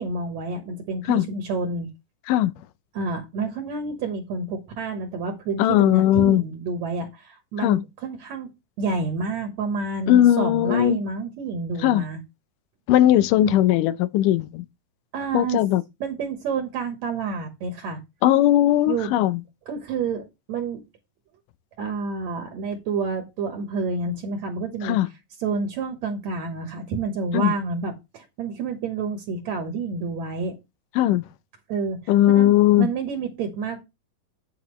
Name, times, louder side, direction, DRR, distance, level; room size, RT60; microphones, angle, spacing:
voice 1, 0.0-1.9 2.9-8.5 8.8-12.2 13.4-13.7 15.1-15.6 16.0-18.0 18.9-19.1 19.7-20.8 21.8-25.0 25.4-30.5 31.7-32.5 32.8-33.8, right 4 dB, 65° right, 2.3 m, -29 dB
voice 2, 5.6-6.5 7.6-7.8 10.1-11.0 11.8-12.0 12.9-14.6 15.3-15.8 18.2-19.4 24.8-25.1 27.3-27.5 31.0-31.2 32.1-32.9, left 13 dB, 85° left, 2.2 m, -18 dB
9.0 x 7.9 x 3.1 m
omnidirectional pair, 3.7 m